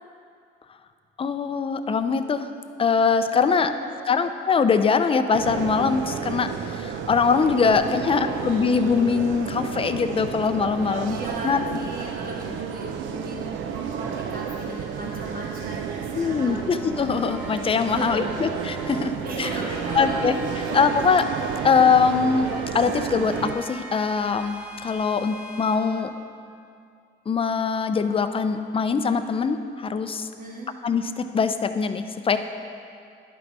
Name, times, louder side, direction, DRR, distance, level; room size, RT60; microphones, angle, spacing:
voice 1, 1.2-2.5 2.8-3.7 4.1-11.2 11.4-11.6 16.2-19.5 20.0-20.3 20.7-21.3 21.6-26.1 27.3-30.3 30.8-32.4, left 5 dB, 30° left, 9 dB, 0.4 m, -22 dB
voice 2, 3.3-4.3 7.6-8.6 11.0-16.7 17.8-18.4 18.7-20.2 20.5-20.7 30.4-30.7, right 1 dB, 45° right, -3 dB, 1.5 m, -37 dB
sound 1, 5.3-23.5, right 7 dB, 75° right, 0.5 m, -31 dB
sound 2, 16.4-19.0 19.4-26.0, right 1 dB, 5° right, 1.0 m, -41 dB
11.0 x 4.0 x 4.6 m, 2.4 s
cardioid pair, 90°, 20 cm